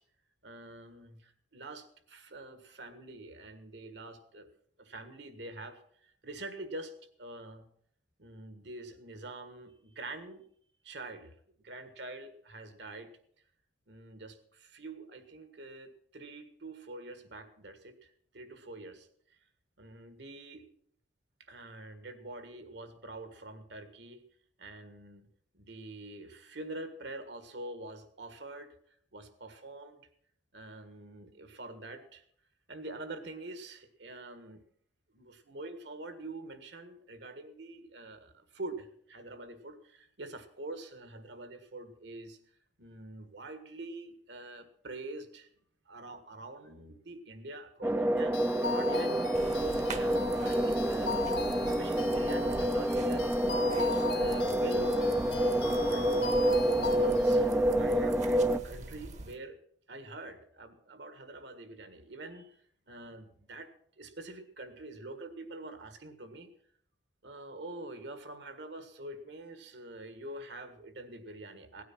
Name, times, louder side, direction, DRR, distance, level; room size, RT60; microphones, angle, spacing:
voice 1, 0.4-4.5 4.8-6.9 7.2-7.7 8.2-10.5 10.8-11.4 11.6-13.1 13.9-19.4 19.8-20.7 21.4-24.2 24.6-25.3 25.5-28.7 29.1-30.0 30.5-32.2 32.7-34.6 35.1-42.4 42.8-45.5 45.9-49.2 49.5-51.1 51.6-53.3 53.8-56.4 56.9-59.6 59.9-62.6 62.9-66.5 67.2-71.8, right 2 dB, 65° right, 9 dB, 1.6 m, -45 dB
sound 1, 47.8-58.6, right 1 dB, 10° right, 0.4 m, -28 dB
sound 2, 48.3-57.4, left 4 dB, 70° left, 2.0 m, -40 dB
sound 3, 49.3-59.4, right 2 dB, 40° right, 1.0 m, -44 dB
17.0 x 9.4 x 5.9 m, 0.64 s
head